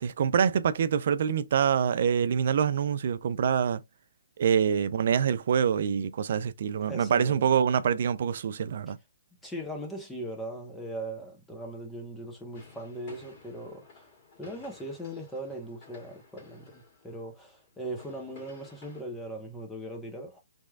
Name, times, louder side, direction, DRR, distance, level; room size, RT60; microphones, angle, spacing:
voice 1, 0.0-3.8 4.4-9.0, right 7 dB, 60° right, 0.4 m, -25 dB
voice 2, 6.8-7.5 9.4-14.1 14.4-20.4, right 1 dB, 5° left, 1.2 m, -39 dB
sound 1, 12.5-19.0, left 4 dB, 40° left, 2.4 m, -54 dB
3.5 x 3.0 x 2.4 m
hypercardioid pair, 140°, 0 cm